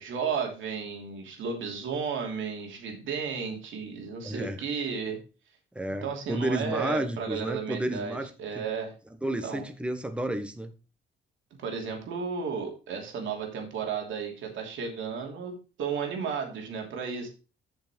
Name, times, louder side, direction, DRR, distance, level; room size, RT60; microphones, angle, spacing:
voice 1, 0.0-5.2 6.0-8.9 9.4-9.7 11.6-17.3, right 6 dB, 75° right, 2 dB, 3.0 m, -33 dB
voice 2, 4.2-4.6 5.7-8.3 8.5-8.6 9.2-10.7, right 1 dB, 5° right, 7 dB, 1.3 m, -31 dB
8.5 x 6.4 x 4.4 m, 0.32 s
cardioid pair, 90°, 20 cm